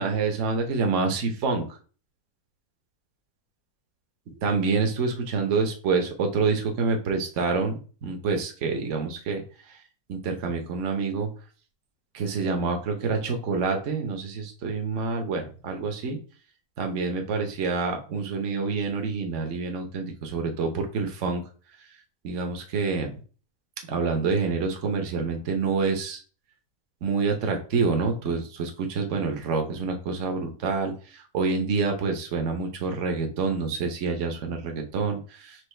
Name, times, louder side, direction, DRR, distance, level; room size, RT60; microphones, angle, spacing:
voice 1, 0.0-1.6 4.4-7.7 8.0-9.4 10.1-11.3 12.1-16.2 16.8-21.4 22.2-23.1 23.9-26.2 27.0-30.9 31.3-35.7, right 4 dB, 55° right, 3 dB, 1.1 m, -27 dB
6.1 x 2.6 x 3.2 m, 0.39 s
omnidirectional pair, 1.7 m